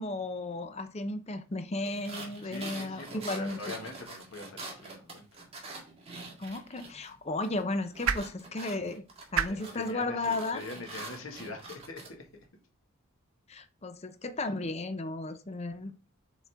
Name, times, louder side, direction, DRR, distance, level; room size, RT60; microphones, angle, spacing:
voice 1, 0.0-3.6 6.4-9.0 9.3-10.6 13.5-15.9, left 2 dB, 30° left, 0.6 m, -34 dB
sound 1, 1.9-7.1 7.4-12.1, right 3 dB, 30° right, 1.8 m, -45 dB
voice 2, 2.4-5.3 9.5-12.3, left 3 dB, 80° left, 1.8 m, -43 dB
sound 2, 6.2-12.5, right 7 dB, 85° right, 0.6 m, -39 dB
7.3 x 4.1 x 3.5 m
head